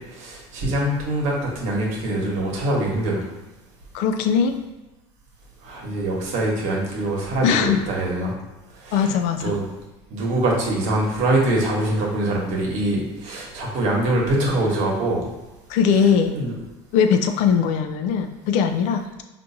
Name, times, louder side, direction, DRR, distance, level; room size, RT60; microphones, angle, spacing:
voice 1, 0.1-3.2 5.6-8.3 8.8-9.1 9.4-9.7 10.1-15.3 16.3-16.5, right 1 dB, 65° right, -2 dB, 1.1 m, -23 dB
voice 2, 3.9-4.6 7.4-7.8 8.9-9.6 15.7-16.3 16.9-19.2, left 7 dB, 70° left, 7 dB, 0.4 m, -20 dB
4.5 x 2.5 x 2.7 m, 1.1 s
supercardioid pair, 110°, 13 cm